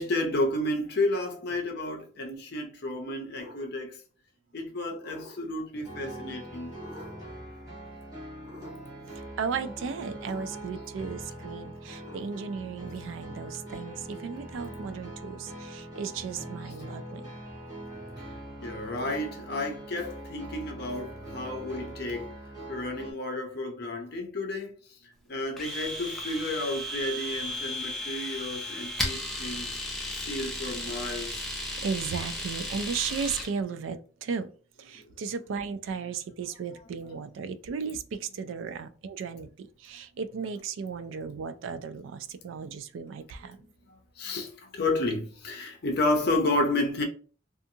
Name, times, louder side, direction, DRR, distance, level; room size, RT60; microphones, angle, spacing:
voice 1, 0.0-4.0 4.5-6.8 18.6-22.4 22.7-24.8 25.3-29.7 30.1-31.5 44.2-47.0, left 2 dB, 55° left, 0.5 m, -31 dB
sound 1, 3.3-3.8 5.0-5.7 6.7-7.4 8.4-9.1 10.2-10.9 12.0-12.6, left 1 dB, 55° right, 1.2 m, -48 dB
sound 2, 5.8-23.1, right 1 dB, 20° right, 1.0 m, -42 dB
voice 2, 9.4-17.3 31.8-34.5 34.8-43.6, right 6 dB, 75° right, 0.3 m, -35 dB
Domestic sounds home sounds, 25.6-33.5, left 1 dB, ahead, 0.4 m, -35 dB
2.6 x 2.4 x 2.6 m
head